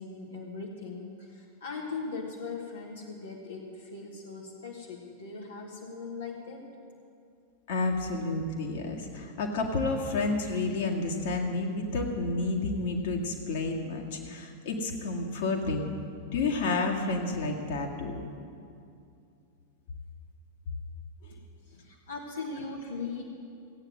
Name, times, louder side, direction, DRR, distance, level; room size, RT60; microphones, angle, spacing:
voice 1, 0.0-6.7 21.6-23.2, left 4 dB, 70° left, -2 dB, 1.5 m, -39 dB
voice 2, 7.7-15.8 16.3-18.2 21.2-21.3, left 3 dB, 55° left, 1 dB, 1.9 m, -30 dB
16.0 x 9.1 x 7.8 m, 2.5 s
figure-of-eight pair, 90°, 0 cm